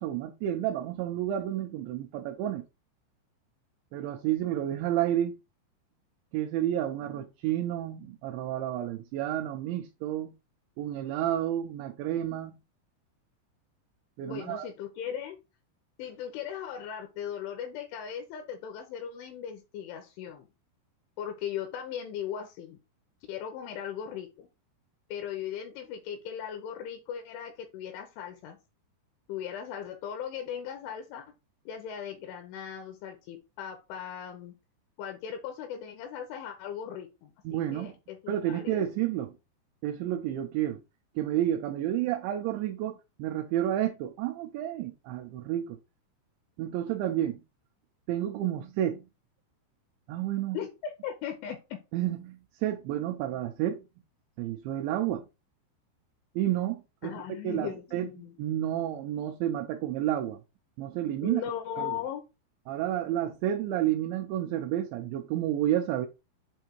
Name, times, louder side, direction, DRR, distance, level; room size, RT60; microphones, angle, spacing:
voice 1, 0.0-2.6 3.9-5.4 6.3-10.3 10.8-12.5 14.2-14.7 37.5-37.9 38.3-39.3 39.8-40.8 41.2-45.8 46.6-47.4 48.1-49.0 50.1-50.6 51.9-53.8 54.4-55.3 56.4-57.1 57.4-58.1 58.4-60.4 60.8-61.4 61.8-62.0 62.7-66.1, right 12 dB, 80° right, 2.8 m, -30 dB
voice 2, 14.2-15.4 16.0-20.5 21.2-22.8 23.3-24.5 25.1-28.6 29.3-31.3 31.7-34.5 35.0-38.9 50.5-51.8 57.0-58.3 61.2-62.2, left 9 dB, 80° left, 3.2 m, -38 dB
7.9 x 2.8 x 4.5 m
omnidirectional pair, 5.6 m